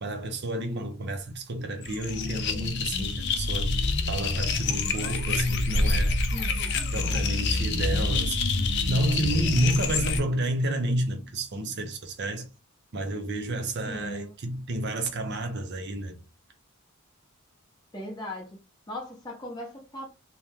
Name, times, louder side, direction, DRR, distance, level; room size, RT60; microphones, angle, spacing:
voice 1, 0.0-3.7 4.1-6.2 6.9-8.5 8.9-12.5 12.9-16.2, right 1 dB, 50° right, 0.6 m, -30 dB
sound 1, 1.8-10.2, left 3 dB, 50° left, 0.5 m, -27 dB
voice 2, 6.3-6.9 13.9-14.3 17.9-18.6 18.9-20.1, left 1 dB, 20° left, 0.7 m, -38 dB
2.8 x 2.1 x 3.4 m
head